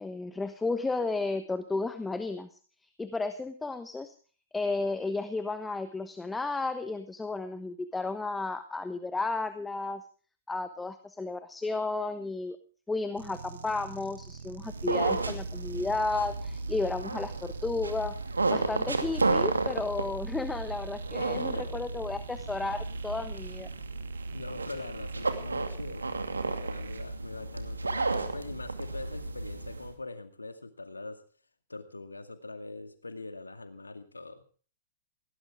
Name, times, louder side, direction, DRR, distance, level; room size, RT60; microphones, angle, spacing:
voice 1, 0.0-2.6 3.0-4.1 4.5-10.0 10.5-12.6 12.9-18.2 18.5-23.7, left 3 dB, 10° left, 11 dB, 1.1 m, -33 dB
sound 1, 13.2-27.0, right 7 dB, 65° right, 1.5 m, -47 dB
sound 2, 14.6-29.9, right 3 dB, 85° right, 2.5 m, -33 dB
voice 2, 21.2-21.9 24.3-26.1 26.6-28.0 28.3-31.2 31.7-34.4, left 3 dB, 85° left, 9 dB, 2.3 m, -42 dB
19.5 x 17.5 x 3.6 m, 0.40 s
figure-of-eight pair, 115°, 0 cm